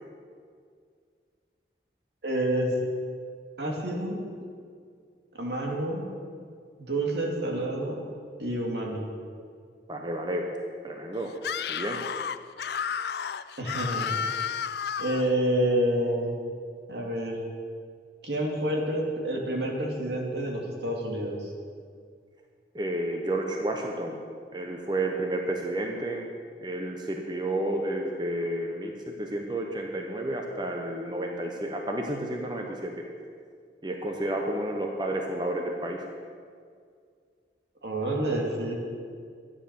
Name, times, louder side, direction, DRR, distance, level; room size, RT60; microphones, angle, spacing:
voice 1, 2.2-2.7 3.6-4.2 5.3-6.0 6.8-8.0 8.4-9.0 13.6-14.1 15.0-16.3 16.9-17.4 18.2-21.5 37.8-38.8, right 1 dB, 80° right, 0 dB, 2.5 m, -28 dB
voice 2, 9.9-10.5 10.8-11.3 11.7-12.0 22.7-24.2 24.5-26.3 26.6-33.0 33.8-36.0, right 1 dB, 25° right, 2 dB, 1.0 m, -31 dB
Screaming, 11.4-15.3, left 7 dB, 70° left, 0.4 m, -32 dB
13.0 x 9.9 x 7.0 m, 2.1 s
head